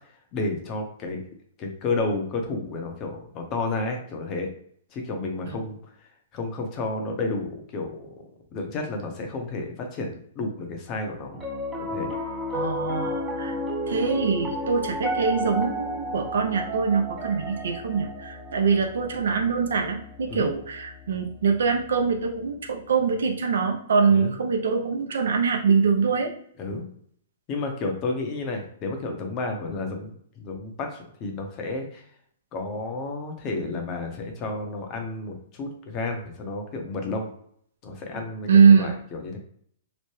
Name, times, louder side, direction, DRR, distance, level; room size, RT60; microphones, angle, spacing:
voice 1, 0.3-1.2 1.6-4.5 4.9-5.8 6.3-8.1 8.5-11.4 11.9-12.1 20.3-20.5 24.1-24.3 26.6-26.9 27.5-32.0 32.5-37.3 37.8-39.4, left 3 dB, 35° left, 3 dB, 0.8 m, -31 dB
Piano, 11.3-21.7, equal, 15° right, 0.6 m, -33 dB
voice 2, 12.5-13.5 13.9-26.3 38.5-38.9, right 5 dB, 75° right, 4 dB, 0.6 m, -23 dB
3.0 x 2.1 x 3.1 m, 0.64 s
hypercardioid pair, 125°, 0 cm